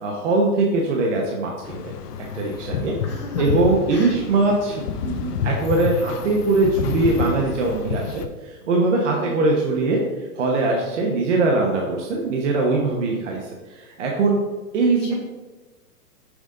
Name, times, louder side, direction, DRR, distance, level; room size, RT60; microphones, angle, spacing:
voice 1, 0.0-1.9 2.3-2.9 3.4-10.0 10.4-14.4 14.7-15.1, right 3 dB, 50° right, -1 dB, 1.1 m, -21 dB
sound 1, 1.6-8.3, left 7 dB, 80° left, 0.8 m, -29 dB
voice 2, 3.0-3.5 3.9-4.2 9.0-9.4 15.0-15.1, left 1 dB, 20° left, -2 dB, 0.4 m, -35 dB
6.2 x 5.0 x 3.7 m, 1.2 s
hypercardioid pair, 165°, 45 cm